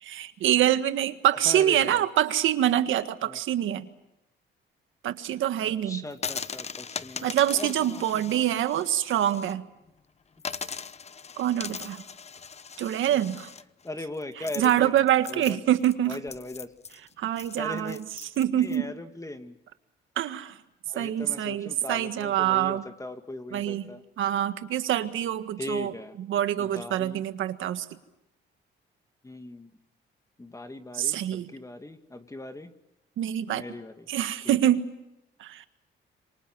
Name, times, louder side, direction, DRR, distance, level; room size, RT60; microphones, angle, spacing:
voice 1, 0.0-3.9 5.0-6.0 7.2-9.6 11.4-12.0 12.8-13.5 14.6-16.2 17.2-18.0 18.4-18.9 20.2-20.6 20.9-22.8 23.5-23.9 24.2-27.9 30.9-31.5 33.2-33.6 34.1-34.8 35.4-35.6, right 11 dB, 80° right, 10 dB, 1.7 m, -25 dB
voice 2, 1.4-2.1 3.2-3.4 5.6-8.5 13.1-13.3 13.8-15.0 15.3-15.6 16.1-16.7 17.6-18.0 18.6-19.6 20.9-24.0 25.6-26.2 26.6-27.2 29.2-29.7 30.4-32.7 33.5-34.1 34.4-34.6, left 2 dB, 15° left, 6 dB, 2.3 m, -39 dB
sound 1, 6.1-9.5 9.9-10.0 10.4-18.8, left 5 dB, 35° left, 0.9 m, -40 dB
27.5 x 24.5 x 6.2 m, 0.92 s
cardioid pair, 90°, 20 cm